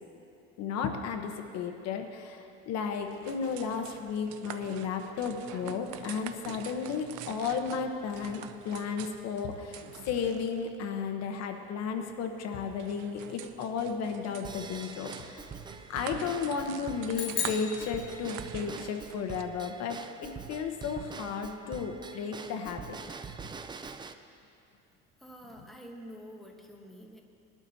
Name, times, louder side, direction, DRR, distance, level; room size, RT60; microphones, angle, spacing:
voice 1, 0.6-15.6 15.9-23.0, left 6 dB, 60° left, 5 dB, 1.0 m, -34 dB
sound 1, 2.9-19.4, right 10 dB, 80° right, 0.7 m, -46 dB
Drum kit / Drum / Bell, 14.4-24.1, right 5 dB, 15° right, 0.4 m, -44 dB
sound 2, 17.1-18.8, left 9 dB, 75° left, 1.6 m, -36 dB
voice 2, 25.2-27.2, equal, ahead, 0 dB, 1.2 m, -47 dB
20.5 x 12.0 x 2.8 m, 2.6 s
cardioid pair, 135°, 30 cm